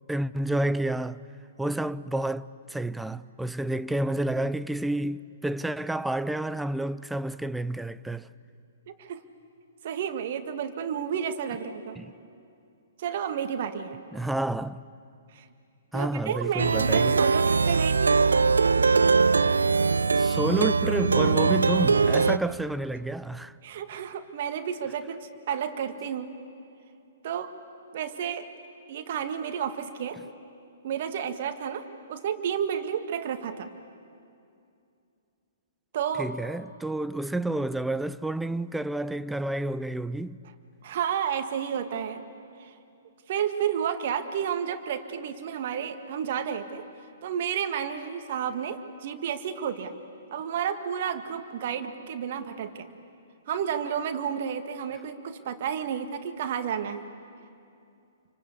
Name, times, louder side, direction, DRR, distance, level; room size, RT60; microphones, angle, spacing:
voice 1, 0.1-1.2 1.6-8.3 12.0-12.1 14.1-14.8 15.9-17.2 20.2-23.5 36.2-40.4, right 1 dB, 5° right, 0.6 m, -30 dB
voice 2, 8.9-9.2 9.8-12.0 13.0-14.0 15.3-15.4 15.9-18.2 23.6-26.3 27.2-27.5 27.9-28.5 28.9-30.2 30.8-33.7 35.9-36.3 40.8-42.2 42.6-42.7 43.3-46.8 47.2-49.9 50.3-52.9 53.5-57.1, right 8 dB, 45° right, 1.9 m, -31 dB
Plucked string instrument, 16.6-22.4, right 4 dB, 70° right, 0.7 m, -21 dB
28.5 x 25.0 x 8.3 m
figure-of-eight pair, 115°, 0 cm